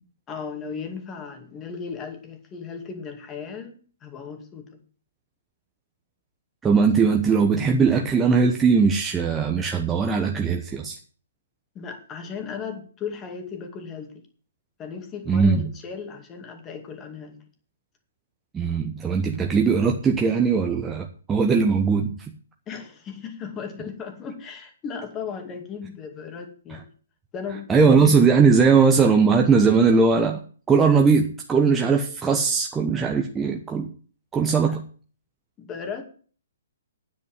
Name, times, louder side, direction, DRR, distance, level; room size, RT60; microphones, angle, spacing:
voice 1, 0.3-4.7 11.7-14.2 14.8-17.4 22.7-26.9 27.3-27.7 34.7-34.8 35.6-36.0, left 6 dB, 20° left, 5 dB, 2.4 m, -36 dB
voice 2, 6.6-11.0 15.3-15.7 18.5-22.3 27.7-30.4 30.7-33.9 34.3-34.8, right 5 dB, 15° right, 2 dB, 1.0 m, -19 dB
9.3 x 8.2 x 7.6 m, 0.42 s
figure-of-eight pair, 125°, 0 cm